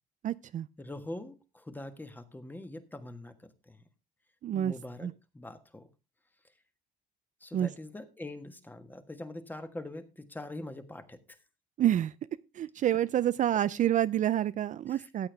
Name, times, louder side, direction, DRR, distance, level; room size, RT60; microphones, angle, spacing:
voice 1, 0.2-0.7 4.4-4.7 5.0-5.1 7.5-7.7 11.8-12.1 12.6-15.3, right 11 dB, 50° right, 0.5 m, -28 dB
voice 2, 0.8-3.8 4.5-5.9 7.4-11.2 14.9-15.1, left 1 dB, 10° left, 1.5 m, -43 dB
14.5 x 8.6 x 3.4 m
cardioid pair, 110°, 17 cm